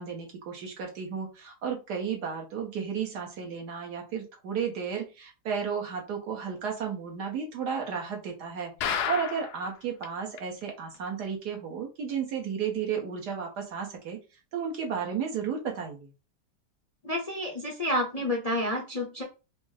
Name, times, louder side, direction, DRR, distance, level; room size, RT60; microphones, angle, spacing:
voice 1, 0.0-14.2 14.5-16.1, right 6 dB, 70° right, 1 dB, 1.5 m, -33 dB
sound 1, 8.8-9.7 10.0-10.1 10.4-10.5 10.9-11.0, left 8 dB, 70° left, 1.1 m, -30 dB
voice 2, 17.0-19.2, left 1 dB, 35° left, -1 dB, 0.6 m, -29 dB
5.0 x 2.1 x 3.3 m, 0.30 s
omnidirectional pair, 1.9 m